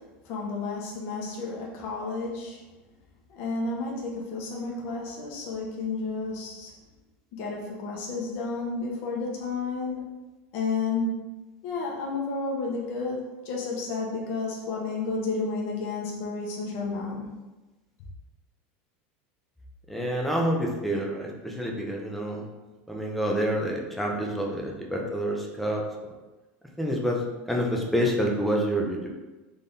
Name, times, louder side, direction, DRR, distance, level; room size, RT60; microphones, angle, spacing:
voice 1, 0.2-2.6 3.3-6.7 7.3-10.1 10.5-11.3 11.6-17.3, left 3 dB, 50° left, -2 dB, 1.1 m, -31 dB
voice 2, 19.9-22.5 22.9-25.8 26.8-29.1, equal, ahead, -1 dB, 0.6 m, -28 dB
3.7 x 3.4 x 4.0 m, 1.1 s
supercardioid pair, 160°, 5 cm